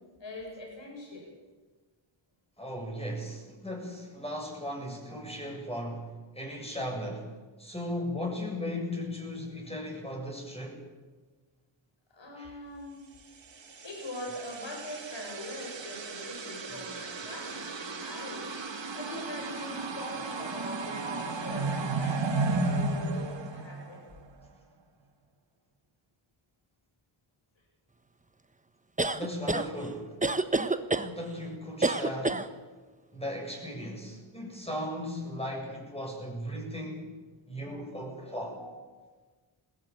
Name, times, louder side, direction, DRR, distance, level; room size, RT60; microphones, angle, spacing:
voice 1, 0.2-1.3 5.1-5.4 12.1-13.0 13.8-18.5 18.9-24.0 38.6-39.0, left 1 dB, 65° left, 1 dB, 7.6 m, -42 dB
voice 2, 2.6-7.3 7.6-10.8 12.4-12.6 16.7-16.8 29.1-30.2 31.0-32.4 33.1-37.2 37.5-38.6, left 1 dB, 10° left, 1 dB, 7.4 m, -37 dB
sound 1, 13.6-24.3, right 3 dB, 60° right, 2.3 m, -34 dB
sound 2, 29.0-29.7 30.2-31.1 31.8-32.5, right 2 dB, 15° right, 1.2 m, -27 dB
20.0 x 16.5 x 9.0 m, 1.3 s
cardioid pair, 60°, 49 cm